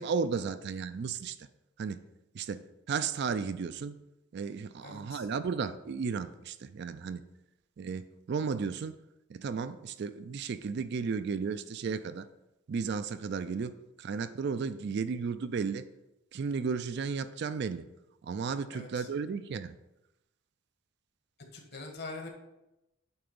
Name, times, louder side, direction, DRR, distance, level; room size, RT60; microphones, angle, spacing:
voice 1, 0.0-1.4 1.8-2.0 2.3-2.6 2.9-4.0 4.3-7.2 7.8-9.0 9.3-12.3 12.7-15.8 16.3-17.9 18.2-19.8, right 5 dB, 50° right, 12 dB, 0.3 m, -34 dB
voice 2, 4.8-5.3 18.7-19.1 21.5-22.3, left 3 dB, 50° left, 2 dB, 1.3 m, -43 dB
8.8 x 3.4 x 5.2 m, 0.93 s
head